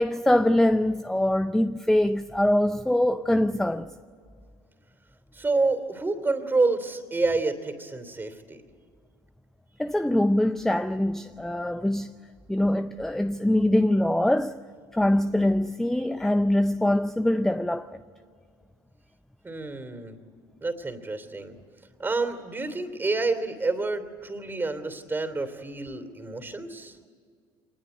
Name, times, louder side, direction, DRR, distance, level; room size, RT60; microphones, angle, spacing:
voice 1, 0.0-3.9 9.8-12.1 12.5-14.6 14.9-17.9, left 1 dB, 5° left, 0.6 m, -23 dB
voice 2, 5.3-8.6 19.4-20.2 20.6-21.5 22.0-27.0, right 3 dB, 20° right, 3.1 m, -28 dB
25.0 x 20.5 x 9.3 m
supercardioid pair, 90°, 11 cm